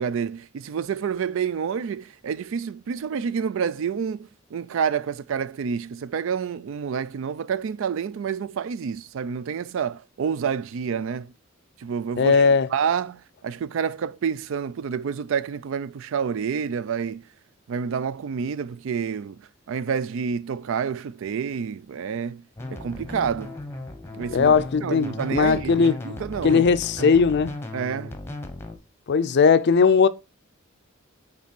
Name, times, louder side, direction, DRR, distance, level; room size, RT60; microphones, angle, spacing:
voice 1, 0.0-11.3 11.8-17.2 17.7-23.5 24.1-24.5 24.8-26.7 27.0-27.1 27.7-28.2, right 6 dB, 65° right, 0.3 m, -28 dB
voice 2, 12.2-12.7 24.3-26.0 26.4-27.5 29.1-30.1, left 5 dB, 55° left, 0.4 m, -18 dB
sound 1, 22.6-28.8, left 2 dB, 10° left, 0.9 m, -36 dB
5.2 x 4.0 x 5.2 m
head